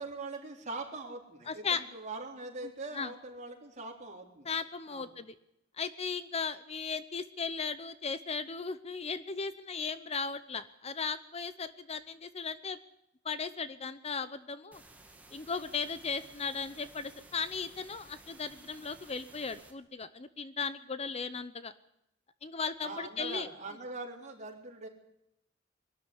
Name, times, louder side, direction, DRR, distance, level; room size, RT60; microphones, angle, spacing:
voice 1, 0.0-4.5 4.9-5.1 22.8-24.9, right 3 dB, 40° right, 1 dB, 3.7 m, -42 dB
voice 2, 1.5-1.8 2.9-3.1 4.4-5.3 5.8-12.8 13.2-14.8 15.3-21.7 22.4-23.5, left 5 dB, 30° left, 14 dB, 0.7 m, -36 dB
sound 1, 14.7-19.7, right 2 dB, 10° right, 2.4 m, -56 dB
22.0 x 13.0 x 9.9 m, 0.82 s
head